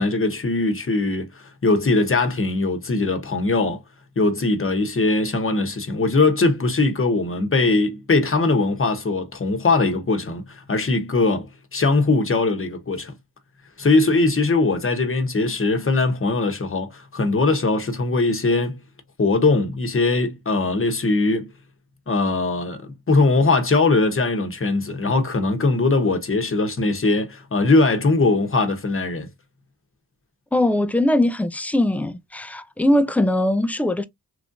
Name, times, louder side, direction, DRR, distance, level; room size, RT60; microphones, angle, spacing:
voice 1, 0.0-3.8 4.2-13.1 13.8-18.8 19.2-21.5 22.1-29.3, left 3 dB, 30° left, 0.9 m, -21 dB
voice 2, 30.5-34.0, left 1 dB, 5° left, 0.3 m, -21 dB
3.1 x 2.6 x 2.5 m
cardioid pair, 50°, 41 cm